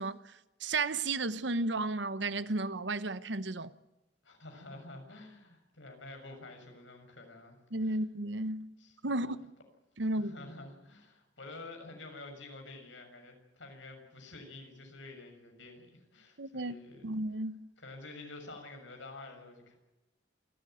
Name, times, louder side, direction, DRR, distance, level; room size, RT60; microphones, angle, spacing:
voice 1, 0.0-3.7 7.7-8.7 9.0-9.4 10.0-10.3 16.4-16.8 17.0-17.7, right 2 dB, 65° right, 1.0 m, -33 dB
voice 2, 4.2-8.0 8.8-9.3 10.1-17.1 17.8-19.7, left 2 dB, 80° left, 6.7 m, -49 dB
28.0 x 13.5 x 9.3 m
head